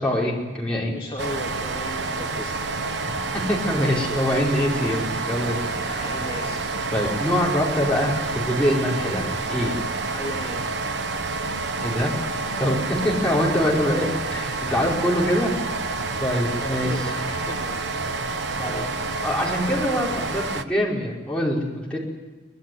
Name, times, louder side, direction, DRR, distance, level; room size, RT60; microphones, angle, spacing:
voice 1, 0.0-0.9 3.3-6.1 6.9-9.8 11.8-12.1 12.6-14.1 14.3-15.5 16.2-17.0 18.6-18.9 19.2-22.0, equal, 5° left, -4 dB, 5.2 m, -24 dB
voice 2, 0.9-2.8 5.8-6.7 10.1-10.6 16.6-17.9 18.1-18.9, left 1 dB, 25° left, -3 dB, 2.6 m, -36 dB
sound 1, 1.2-20.6, right 3 dB, 75° right, 1.0 m, -28 dB
24.0 x 19.5 x 9.6 m, 1.3 s
head